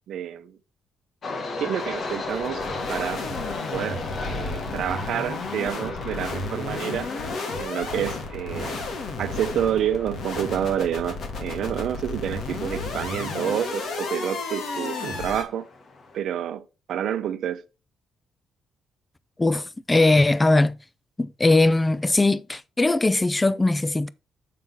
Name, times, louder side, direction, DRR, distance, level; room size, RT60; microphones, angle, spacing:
voice 1, 0.1-0.6 1.6-3.2 3.7-4.0 4.3-7.1 7.6-8.9 9.2-15.7 16.1-17.6, right 10 dB, 70° right, 0.8 m, -28 dB
sound 1, 1.2-16.2, left 3 dB, 45° left, 1.4 m, -37 dB
sound 2, 1.8-15.4, left 3 dB, 65° left, 2.0 m, -33 dB
voice 2, 19.4-20.8 21.2-24.1, left 2 dB, 15° left, 0.5 m, -20 dB
7.5 x 3.9 x 5.6 m
cardioid pair, 90°, 0 cm